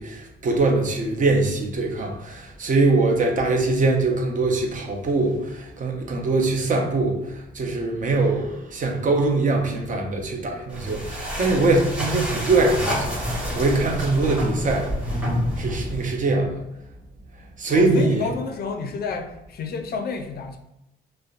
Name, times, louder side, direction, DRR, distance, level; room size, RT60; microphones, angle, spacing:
voice 1, 0.0-14.9 15.6-16.5 17.6-18.3, right 3 dB, 40° right, 2 dB, 0.5 m, -22 dB
sound 1, 10.7-16.2, equal, 5° right, 1.0 m, -28 dB
voice 2, 17.7-20.6, left 4 dB, 50° left, 5 dB, 0.4 m, -30 dB
2.7 x 2.0 x 2.4 m, 0.88 s
cardioid pair, 90°, 20 cm